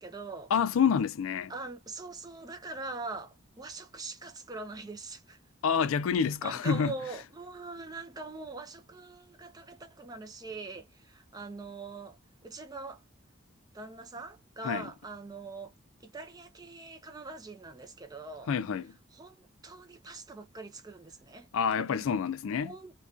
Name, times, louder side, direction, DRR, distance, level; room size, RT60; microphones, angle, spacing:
voice 1, 0.0-0.5 1.5-5.4 5.8-5.9 6.4-13.0 13.7-15.7 16.0-18.5 19.1-21.5 21.8-22.0 22.6-22.9, right 3 dB, 20° right, 0.4 m, -43 dB
voice 2, 0.5-1.5 5.6-6.9 14.6-14.9 18.5-18.9 21.5-22.7, left 6 dB, 75° left, 0.3 m, -28 dB
2.2 x 2.2 x 2.4 m
head